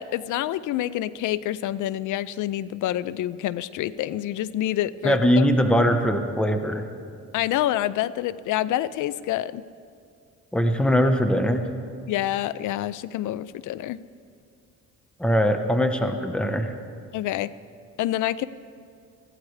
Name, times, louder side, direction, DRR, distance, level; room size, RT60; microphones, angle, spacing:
voice 1, 0.0-5.4 7.3-9.6 12.1-14.0 17.1-17.5 18.0-18.5, left 13 dB, 80° left, 17 dB, 0.5 m, -27 dB
voice 2, 5.0-6.8 10.5-11.7 15.2-16.7, equal, 5° left, 6 dB, 1.0 m, -21 dB
20.5 x 15.0 x 3.2 m, 2.3 s
cardioid pair, 90°, 30 cm